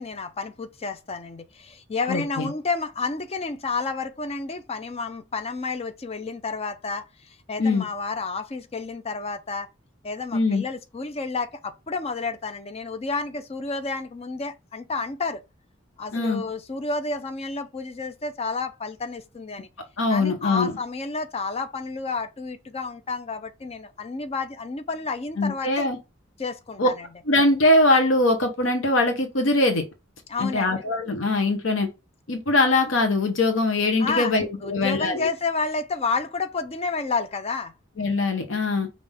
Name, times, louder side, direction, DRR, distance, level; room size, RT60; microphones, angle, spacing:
voice 1, 0.0-9.7 10.0-15.4 16.0-19.7 20.1-25.9 26.4-27.1 30.3-30.8 34.0-34.4 34.6-37.7, left 4 dB, 30° left, 0.5 m, -30 dB
voice 2, 2.1-2.5 7.6-7.8 10.3-10.6 16.1-16.4 20.0-20.8 25.4-26.0 26.8-26.9 27.3-29.8 30.4-31.9 32.3-35.3 38.0-38.9, left 2 dB, 85° left, 0.8 m, -22 dB
5.4 x 2.6 x 3.5 m
head